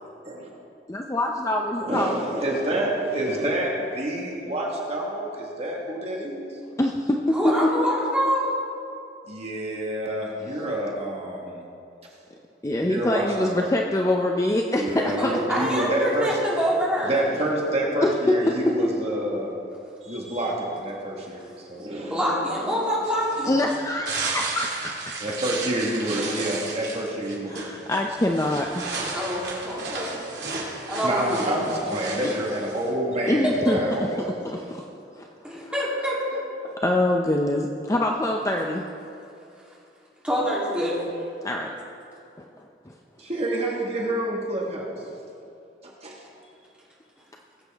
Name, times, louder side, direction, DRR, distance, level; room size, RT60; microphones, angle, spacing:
voice 1, 0.9-2.2 6.8-7.2 9.7-9.8 12.6-15.4 18.0-18.1 18.5-18.6 23.5-25.2 27.5-28.8 32.2-32.3 33.3-34.1 34.4-34.8 35.2-35.7 36.8-38.8 41.4-41.7 42.6-42.9, left 1 dB, 15° left, 1 dB, 0.5 m, -25 dB
voice 2, 1.8-6.5 9.3-11.6 12.8-13.7 14.8-16.3 17.0-19.5 20.0-22.2 25.2-27.6 28.9-29.2 31.0-34.6 43.2-44.9 45.8-46.2, right 1 dB, 35° right, -3 dB, 1.6 m, -28 dB
voice 3, 7.3-8.5 15.1-17.3 22.0-23.5 29.1-30.2 30.9-31.6 33.4-33.7 35.4-36.4 40.2-41.0, equal, 5° right, -8 dB, 3.1 m, -26 dB
sound 1, 23.0-32.9, right 3 dB, 65° right, 2.6 m, -34 dB
20.0 x 8.1 x 3.5 m, 2.7 s
head